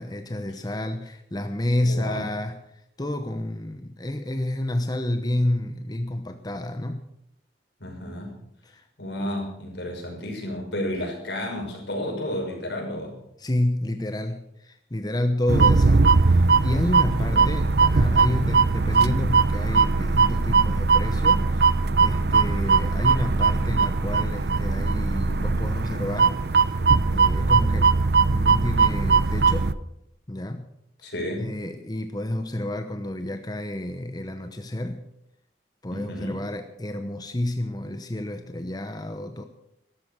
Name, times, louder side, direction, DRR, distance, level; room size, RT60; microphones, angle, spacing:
voice 1, 0.0-2.6 3.0-7.0 8.6-8.9 13.4-21.7 22.0-26.7 27.1-27.9 28.3-29.7 30.3-30.7 31.0-31.1 31.4-35.0 35.8-39.4, left 1 dB, 25° left, 7 dB, 0.9 m, -29 dB
voice 2, 1.8-2.3 7.8-8.4 9.0-13.2 17.2-17.6 31.0-31.6 35.9-36.4, left 1 dB, 80° left, 1 dB, 5.8 m, -32 dB
sound 1, 15.5-29.7, right 4 dB, 65° right, 0.7 m, -20 dB
13.5 x 12.5 x 6.8 m, 0.78 s
head